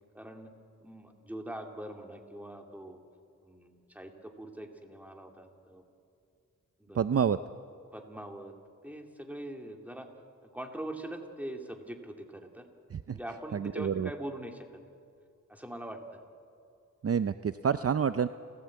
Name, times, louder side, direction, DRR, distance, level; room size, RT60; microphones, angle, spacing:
voice 1, 0.1-0.5 0.8-3.0 3.4-5.8 6.9-7.1 7.9-8.5 8.8-10.1 10.5-12.7 13.1-14.7 15.5-16.0, right 1 dB, 5° right, 3 dB, 2.6 m, -42 dB
voice 2, 6.9-7.4 12.9-13.2 13.5-14.1 17.0-18.3, right 7 dB, 45° right, 12 dB, 0.6 m, -28 dB
30.0 x 15.5 x 8.6 m, 2.5 s
wide cardioid pair, 75°, 32 cm